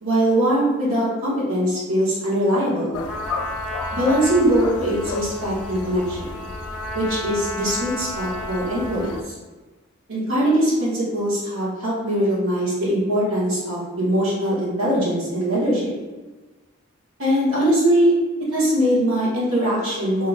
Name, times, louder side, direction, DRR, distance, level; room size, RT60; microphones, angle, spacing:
voice 1, 0.0-3.0 3.9-6.2 6.9-9.3 10.1-15.9 17.2-18.1 18.5-20.3, equal, 85° right, -7 dB, 1.3 m, -21 dB
sound 1, 2.9-9.2, left 3 dB, 80° left, 0.4 m, -34 dB
Trumpet, 3.1-9.3, left 1 dB, ahead, 0.3 m, -33 dB
2.9 x 2.3 x 3.9 m, 1.2 s
head